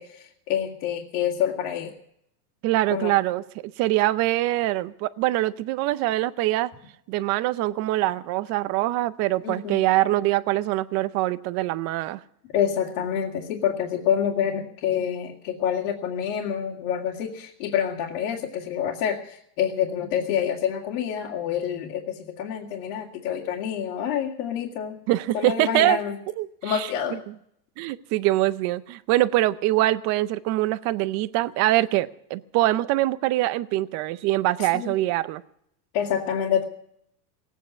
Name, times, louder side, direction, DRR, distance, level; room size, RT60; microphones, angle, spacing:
voice 1, 0.0-1.9 2.9-3.1 9.4-9.8 12.5-25.0 25.3-26.2 26.6-27.2 34.6-34.9 35.9-36.6, left 9 dB, 60° left, -1 dB, 2.3 m, -27 dB
voice 2, 2.6-3.4 3.8-6.7 7.1-12.2 25.1-26.0 26.4-26.9 27.3-27.4 27.8-35.4, right 16 dB, 35° right, 15 dB, 0.6 m, -24 dB
18.0 x 9.2 x 8.2 m, 0.73 s
supercardioid pair, 145°, 49 cm